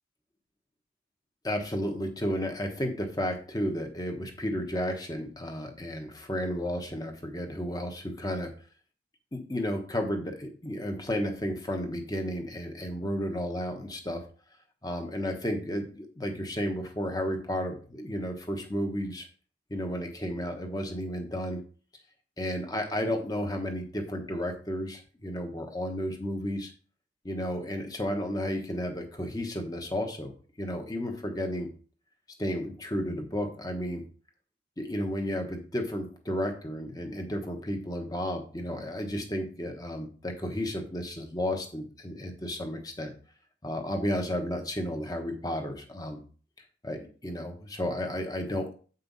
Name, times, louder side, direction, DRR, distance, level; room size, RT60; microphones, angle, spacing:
voice 1, 1.4-8.5 9.3-14.2 14.8-19.3 19.7-21.6 22.4-26.7 27.2-31.7 32.4-34.1 34.8-43.1 43.6-46.2 46.8-48.7, equal, 20° left, 4 dB, 1.2 m, -32 dB
8.1 x 5.5 x 4.1 m, 0.40 s
head